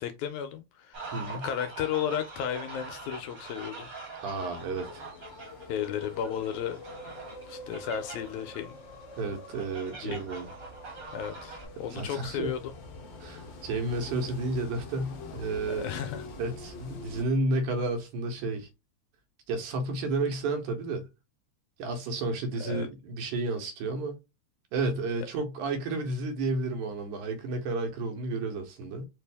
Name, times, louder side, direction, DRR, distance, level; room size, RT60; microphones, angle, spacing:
voice 1, 0.0-3.9 5.7-6.8 7.5-8.8 10.0-10.2 11.1-12.7 15.8-16.2 22.6-22.9, left 9 dB, 80° left, 1.8 m, -34 dB
sound 1, 0.9-11.7, right 4 dB, 40° right, 1.3 m, -44 dB
voice 2, 1.1-1.4 4.2-5.1 9.2-10.5 11.9-12.5 13.2-15.9 16.4-18.7 19.5-21.0 21.8-24.2 24.7-29.1, right 2 dB, 80° right, 2.4 m, -31 dB
sound 2, 4.3-17.2, left 3 dB, 60° left, 1.3 m, -45 dB
5.0 x 2.6 x 3.4 m
omnidirectional pair, 3.5 m